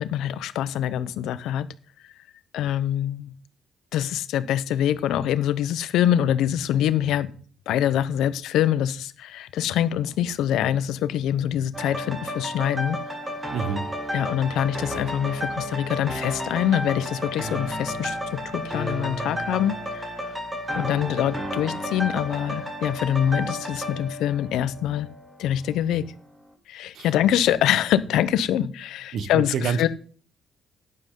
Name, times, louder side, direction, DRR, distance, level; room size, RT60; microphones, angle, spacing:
voice 1, 0.0-1.7 2.5-3.3 3.9-7.3 7.7-13.0 14.1-20.1 20.8-25.1 25.4-26.0 26.7-29.9, left 10 dB, 85° left, 0.9 m, -24 dB
sound 1, 11.7-25.5 25.9-26.0, equal, 15° right, 3.0 m, -32 dB
voice 2, 13.5-13.8 26.9-27.1 29.1-29.9, right 6 dB, 70° right, 1.4 m, -27 dB
12.0 x 9.7 x 3.9 m
cardioid pair, 90°, 0 cm